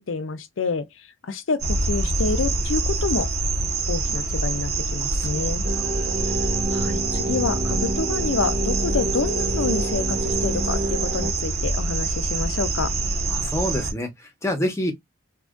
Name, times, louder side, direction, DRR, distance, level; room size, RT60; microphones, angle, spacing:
voice 1, 0.0-3.3 3.9-5.6 6.7-12.9, left 4 dB, 70° left, 0.6 m, -28 dB
sound 1, 1.6-13.9, right 2 dB, 55° right, 1.1 m, -25 dB
voice 2, 5.0-5.8 13.3-14.9, left 1 dB, 15° left, 1.0 m, -28 dB
sound 2, 5.6-11.3, right 1 dB, 35° right, 0.8 m, -29 dB
2.9 x 2.6 x 3.5 m
head